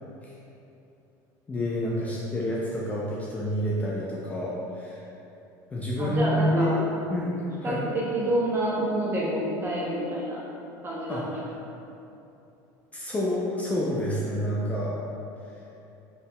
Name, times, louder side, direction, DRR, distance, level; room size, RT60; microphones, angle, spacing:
voice 1, 1.5-5.0 5.7-6.8 7.1-7.8 11.1-11.2 12.9-14.9, equal, 15° left, -6 dB, 0.4 m, -28 dB
voice 2, 6.0-6.8 7.6-10.4 10.8-11.2, right 1 dB, 25° right, -6 dB, 0.8 m, -28 dB
4.2 x 3.5 x 2.2 m, 2.9 s
cardioid pair, 140°, 9 cm